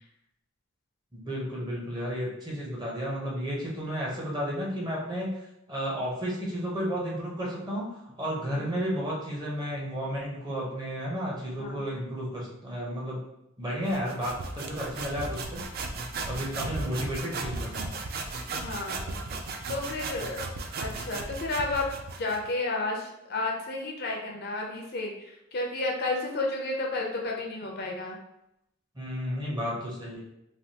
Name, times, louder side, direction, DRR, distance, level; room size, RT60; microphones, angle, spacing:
voice 1, 1.1-5.3 5.7-13.2 13.6-15.6 16.2-17.9 29.0-30.2, equal, 20° right, -4 dB, 0.7 m, -32 dB
sound 1, 13.9-22.5, right 3 dB, 45° right, 0.3 m, -36 dB
voice 2, 18.6-19.2 19.7-20.5 20.8-21.9 22.2-28.2, left 2 dB, 50° left, 0 dB, 0.5 m, -32 dB
3.3 x 2.3 x 2.7 m, 0.82 s
head